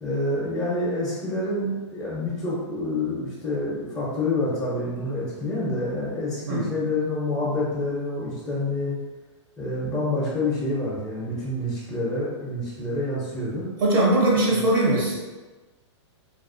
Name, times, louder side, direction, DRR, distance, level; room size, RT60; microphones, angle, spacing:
voice 1, 0.0-9.0 9.6-13.7 14.5-14.6, left 2 dB, 10° left, -9 dB, 0.4 m, -27 dB
voice 2, 13.8-15.2, right 1 dB, 45° right, -4 dB, 0.6 m, -20 dB
2.3 x 2.3 x 2.4 m, 1.2 s
hypercardioid pair, 155°, 16 cm